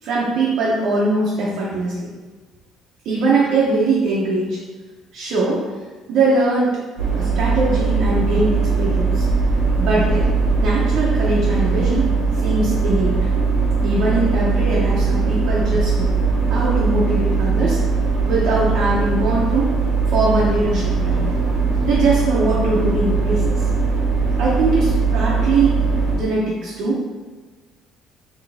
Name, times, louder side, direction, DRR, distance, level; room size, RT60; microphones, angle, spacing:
voice 1, 0.0-2.1 3.0-4.6 5.1-5.6 6.1-6.8 7.2-9.2 9.8-10.3 10.6-13.2 13.8-16.1 16.5-17.8 18.2-19.7 20.1-21.3 21.8-23.6 24.4-25.8 26.1-27.0, right 2 dB, 60° right, -7 dB, 0.9 m, -21 dB
sound 1, 7.0-26.2, right 4 dB, 90° right, 1.3 m, -20 dB
4.6 x 3.1 x 3.5 m, 1.3 s
cardioid pair, 170°, 0 cm